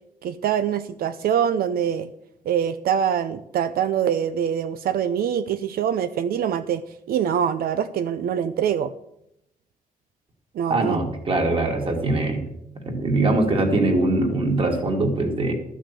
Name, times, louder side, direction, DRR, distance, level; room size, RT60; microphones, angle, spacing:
voice 1, 0.2-2.1 2.5-6.8 7.1-8.9 10.5-11.0, right 8 dB, 85° right, 11 dB, 0.6 m, -24 dB
voice 2, 10.7-12.5 12.8-15.5, right 2 dB, 35° right, 2 dB, 2.5 m, -22 dB
13.5 x 6.4 x 8.2 m, 0.80 s
wide cardioid pair, 170°, 15 cm